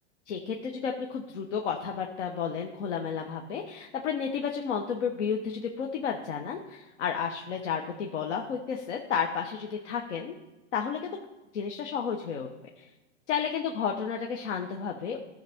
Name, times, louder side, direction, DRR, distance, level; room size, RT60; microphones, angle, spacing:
voice 1, 0.3-10.3 10.7-11.2 11.5-12.5 12.8-12.9 13.3-15.2, left 7 dB, 80° left, 2 dB, 1.2 m, -32 dB
14.5 x 6.6 x 3.6 m, 1.1 s
hypercardioid pair, 125°, 35 cm